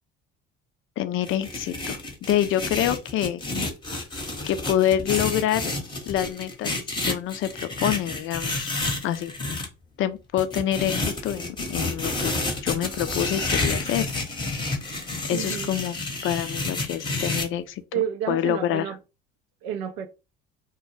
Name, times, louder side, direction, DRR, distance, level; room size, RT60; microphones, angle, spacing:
voice 1, 1.0-3.4 4.5-5.7 6.1-6.7 7.0-8.7 9.0-9.3 10.0-12.3 12.6-14.1 15.3-16.0 16.2-17.8 18.3-18.9, left 11 dB, 45° left, 0.4 m, -26 dB
sound 1, 1.2-9.7 10.4-17.5, left 2 dB, 15° left, 0.8 m, -29 dB
voice 2, 15.3-15.7 17.9-19.0 19.6-20.1, right 10 dB, 70° right, 0.5 m, -30 dB
2.2 x 2.0 x 3.1 m
hypercardioid pair, 70°, 29 cm